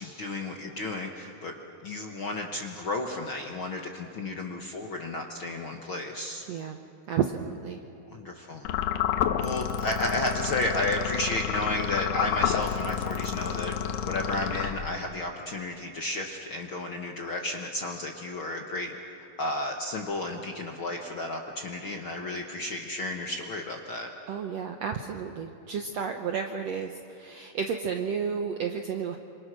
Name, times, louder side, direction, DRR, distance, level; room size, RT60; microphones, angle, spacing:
voice 1, 0.0-1.6 1.8-6.5 8.1-8.6 9.4-13.7 14.0-18.9 19.4-24.1, left 2 dB, 55° left, 2 dB, 1.4 m, -32 dB
voice 2, 6.5-6.8 7.1-7.8 24.3-29.2, right 7 dB, 75° right, 4 dB, 1.5 m, -32 dB
sound 1, 8.7-15.2, left 9 dB, 80° left, 2.6 m, -30 dB
27.5 x 26.5 x 6.3 m, 2.7 s
omnidirectional pair, 4.1 m